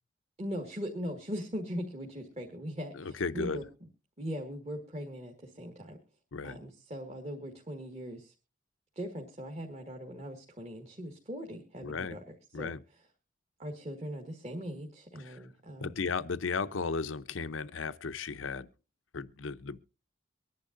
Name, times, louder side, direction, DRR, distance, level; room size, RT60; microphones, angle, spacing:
voice 1, 0.4-3.6 4.2-6.0 6.4-8.3 8.9-13.0 13.6-16.0, equal, 35° right, 1.6 m, -40 dB
voice 2, 3.0-3.6 6.3-6.6 11.8-12.2 12.5-12.8 15.2-15.4 15.8-18.7 19.1-19.8, left 4 dB, 90° left, 0.7 m, -35 dB
24.0 x 10.5 x 2.5 m
head